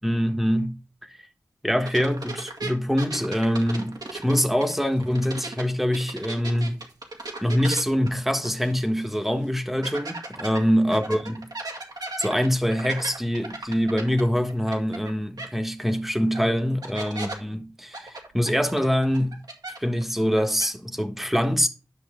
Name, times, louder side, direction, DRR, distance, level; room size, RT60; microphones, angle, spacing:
voice 1, 0.0-0.8 1.6-6.8 7.4-11.5 12.2-19.4 19.8-21.7, equal, 5° right, 1.4 m, -24 dB
sound 1, 1.8-5.6 5.9-8.8 9.1-9.2 9.8-15.1 15.4-15.5 16.3-16.4 16.8-17.3 17.9-20.0 20.3-20.7, right 2 dB, 70° right, 1.9 m, -36 dB
10.5 x 5.9 x 3.7 m
wide cardioid pair, 60°, 7 cm